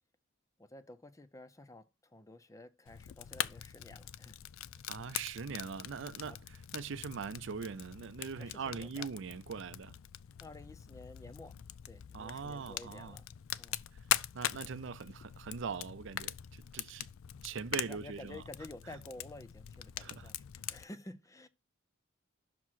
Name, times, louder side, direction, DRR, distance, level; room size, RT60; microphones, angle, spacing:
voice 1, 0.6-4.4 8.4-9.1 10.4-11.6 11.8-13.3 13.6-13.8 17.9-21.5, left 2 dB, 15° left, 0.5 m, -51 dB
Fire, 2.9-20.8, left 12 dB, 85° left, 0.4 m, -42 dB
voice 2, 4.9-6.4 6.7-10.0 12.1-13.2 14.3-17.1 17.4-18.4 18.9-19.0 20.0-20.3 20.6-20.7, right 5 dB, 65° right, 0.5 m, -41 dB
6.1 x 4.5 x 5.7 m
head